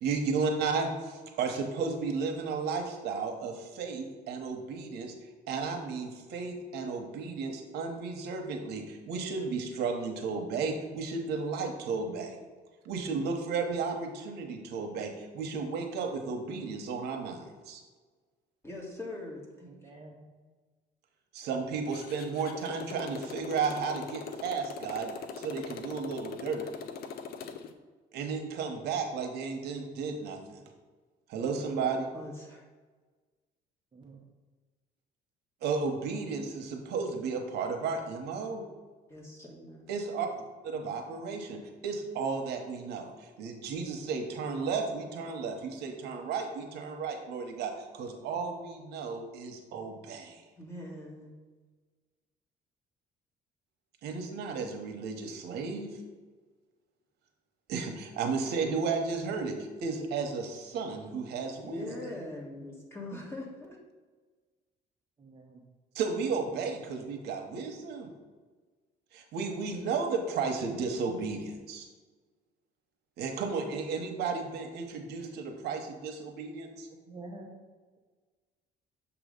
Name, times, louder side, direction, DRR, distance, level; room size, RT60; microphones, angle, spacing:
voice 1, 0.0-5.1 5.5-12.4 12.8-17.8 21.3-25.1 25.4-26.7 28.1-30.6 31.3-32.1 35.6-38.6 39.9-40.3 40.6-50.4 54.0-55.9 57.7-61.9 65.9-68.1 69.1-71.9 73.2-76.9, right 5 dB, 80° right, 3 dB, 0.9 m, -33 dB
voice 2, 18.6-19.7 32.1-32.6 39.1-39.9 50.6-51.3 61.6-63.8, left 1 dB, 15° left, -2 dB, 1.5 m, -42 dB
voice 3, 19.7-20.3 33.9-34.2 65.2-65.6 76.9-77.5, right 2 dB, 30° right, -1 dB, 0.8 m, -48 dB
Motorcycle, 21.9-27.7, left 6 dB, 65° left, 0.6 m, -42 dB
6.8 x 3.0 x 5.1 m, 1.4 s
cardioid pair, 110°, 17 cm